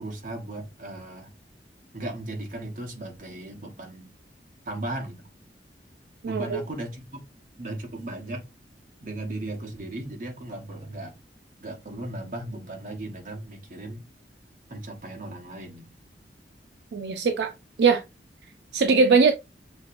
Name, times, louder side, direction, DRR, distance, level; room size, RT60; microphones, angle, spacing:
voice 1, 0.0-1.3 1.9-4.1 4.7-5.3 6.2-7.3 7.6-8.4 9.0-11.1 11.6-14.0 14.7-15.9, right 1 dB, 50° right, 1.1 m, -36 dB
voice 2, 6.2-6.6 16.9-17.5 17.8-18.0 18.7-19.3, right 4 dB, 75° right, 0.4 m, -20 dB
6.3 x 2.9 x 2.5 m
head